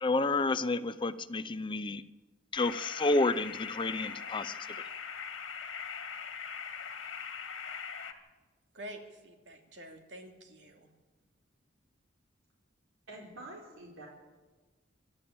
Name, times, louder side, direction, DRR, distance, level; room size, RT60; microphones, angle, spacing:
voice 1, 0.0-2.0 2.5-4.6, left 2 dB, 25° left, 0.6 m, -30 dB
sound 1, 2.5-8.1, left 6 dB, 75° left, 2.1 m, -41 dB
voice 2, 8.7-10.9, right 1 dB, 65° right, 2.9 m, -48 dB
voice 3, 13.1-14.1, right 1 dB, 90° right, 4.3 m, -47 dB
26.0 x 12.0 x 8.6 m
head